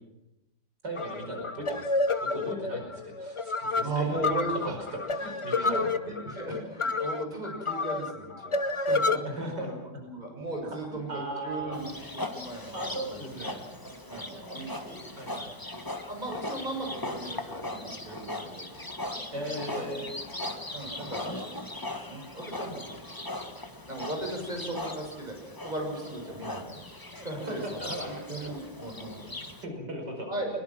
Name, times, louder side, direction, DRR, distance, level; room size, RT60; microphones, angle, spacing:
voice 1, 0.8-5.9 9.3-9.7 10.6-11.8 12.7-15.6 19.3-20.1 27.3-28.7 29.6-30.3, right 1 dB, 65° right, 2 dB, 5.7 m, -38 dB
sound 1, 1.0-9.2, left 3 dB, 35° left, 0.4 m, -29 dB
voice 2, 3.8-4.8 5.6-9.7 10.0-11.9 12.3-13.2 14.1-14.7 16.1-18.7 19.8-19.9 20.7-21.5 21.8-23.1 23.5-26.8 27.1-29.5 30.3-30.5, right 2 dB, 20° right, 1 dB, 6.9 m, -37 dB
Livestock farm animals working animals, 11.7-29.6, left 1 dB, 10° left, 1.5 m, -39 dB
24.0 x 22.0 x 6.1 m, 0.93 s
omnidirectional pair, 2.0 m